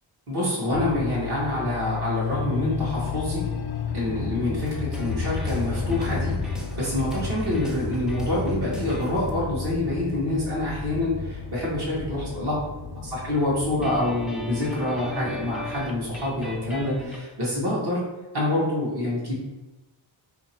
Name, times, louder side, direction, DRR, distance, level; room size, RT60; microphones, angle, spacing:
voice 1, 0.3-3.4 3.9-12.6 13.0-18.0 18.3-19.3, left 1 dB, 55° right, -6 dB, 1.3 m, -26 dB
sound 1, 0.7-17.1, left 5 dB, 55° left, 0.5 m, -32 dB
sound 2, 4.6-9.3 13.8-17.2, left 1 dB, ahead, 0.3 m, -40 dB
2.9 x 2.9 x 4.3 m, 1.1 s
wide cardioid pair, 140°, 46 cm